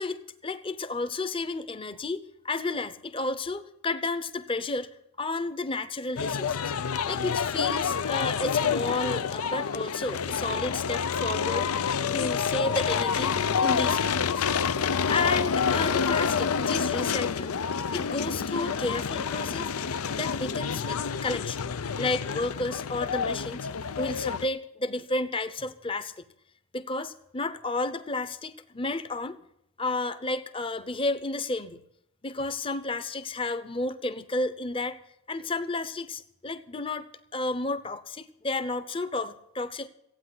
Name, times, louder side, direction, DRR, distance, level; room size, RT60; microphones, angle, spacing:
voice 1, 0.0-2.2 2.4-4.9 5.2-11.7 12.1-14.5 15.1-17.5 17.9-19.7 20.1-21.6 22.0-23.7 24.0-26.2 26.7-29.4 29.8-31.8 32.2-35.0 35.3-37.1 37.3-39.9, left 2 dB, 25° left, 12 dB, 0.8 m, -32 dB
sound 1, 6.2-24.5, left 6 dB, 90° left, 0.6 m, -28 dB
15.5 x 9.1 x 9.7 m, 0.76 s
head